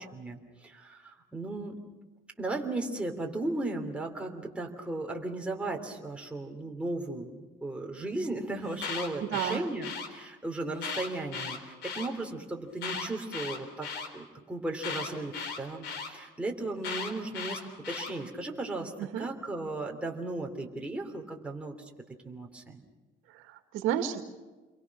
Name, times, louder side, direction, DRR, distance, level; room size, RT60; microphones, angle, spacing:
voice 1, 0.1-1.7 2.4-13.9 14.1-17.6 17.9-21.7 22.2-22.8, right 2 dB, 5° right, 1 dB, 3.2 m, -36 dB
Alarm, 8.6-10.1 10.7-12.1 12.7-14.1 14.8-16.1 16.8-18.1, left 5 dB, 60° left, 3.9 m, -36 dB
voice 2, 9.2-9.7 19.0-19.3 23.3-24.2, right 10 dB, 80° right, 7 dB, 2.0 m, -32 dB
29.0 x 23.0 x 6.1 m, 1.2 s
cardioid pair, 140°, 20 cm